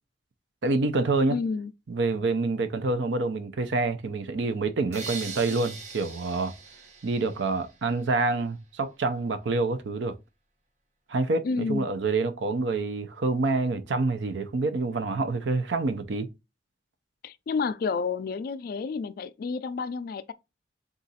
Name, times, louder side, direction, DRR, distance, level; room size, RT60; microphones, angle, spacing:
voice 1, 0.6-1.4 1.9-6.5 7.0-10.1 11.1-16.3, right 3 dB, 75° right, 0.5 m, -27 dB
voice 2, 1.3-1.7 11.4-11.9 17.2-20.3, left 4 dB, 55° left, 0.3 m, -30 dB
sound 1, 4.9-7.9, right 4 dB, 40° right, 0.8 m, -41 dB
3.9 x 2.4 x 4.0 m
head